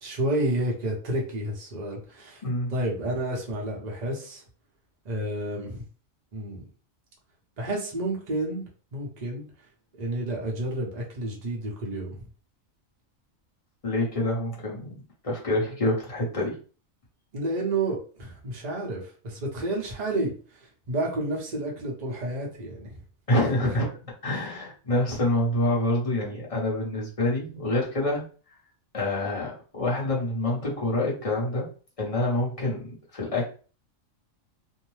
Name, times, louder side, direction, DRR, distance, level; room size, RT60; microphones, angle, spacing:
voice 1, 0.0-2.4 2.7-4.4 5.0-5.8 6.3-6.6 7.6-9.4 10.0-12.2 17.3-23.0 23.6-23.7, right 1 dB, 35° right, -2 dB, 0.8 m, -30 dB
voice 2, 2.4-2.7 13.8-14.9 15.2-16.6 23.3-23.9 24.2-28.3 28.9-31.7 32.0-33.5, left 1 dB, 30° left, -4 dB, 0.9 m, -26 dB
2.7 x 2.1 x 3.1 m, 0.38 s
omnidirectional pair, 1.4 m